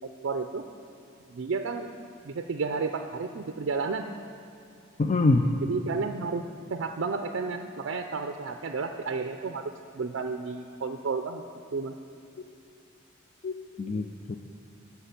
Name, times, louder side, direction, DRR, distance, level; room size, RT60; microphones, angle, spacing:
voice 1, 0.2-0.6 1.3-1.9 2.2-4.1 5.6-9.6 9.9-11.4 11.7-12.0, right 4 dB, 65° right, 6 dB, 0.5 m, -32 dB
voice 2, 5.0-5.5 13.4-14.4, left 2 dB, 35° left, 5 dB, 0.4 m, -25 dB
10.0 x 5.9 x 8.2 m, 2.6 s
head